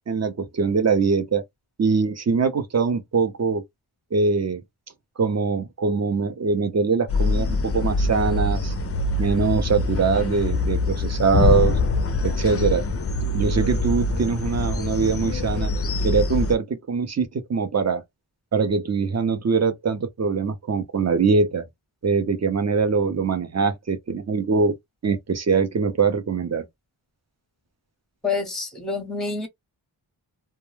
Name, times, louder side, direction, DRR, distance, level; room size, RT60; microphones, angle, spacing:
voice 1, 0.1-1.4 1.8-3.6 4.1-4.6 5.2-8.7 9.2-11.8 12.2-12.8 13.3-15.7 16.0-18.0 18.5-21.6 22.0-24.7 25.0-26.6, right 5 dB, 35° right, 0.6 m, -22 dB
sound 1, 7.1-16.6, left 2 dB, 35° left, 0.4 m, -24 dB
voice 2, 28.2-29.5, left 4 dB, ahead, 0.8 m, -27 dB
2.2 x 2.2 x 3.1 m
wide cardioid pair, 85°, 46 cm